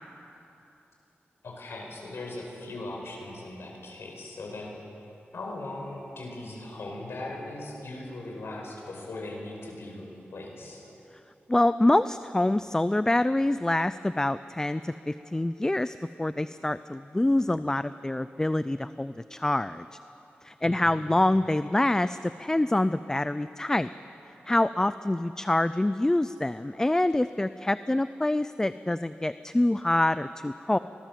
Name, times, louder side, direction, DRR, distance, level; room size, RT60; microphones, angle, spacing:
voice 1, 1.4-4.7 5.3-10.0 10.3-10.8 20.6-21.1, left 2 dB, 80° left, 0 dB, 5.3 m, -39 dB
voice 2, 11.5-19.9 20.4-23.9 24.5-30.8, left 1 dB, 15° left, 13 dB, 0.4 m, -26 dB
24.0 x 19.0 x 7.5 m, 3.0 s
wide cardioid pair, 100°, 4 cm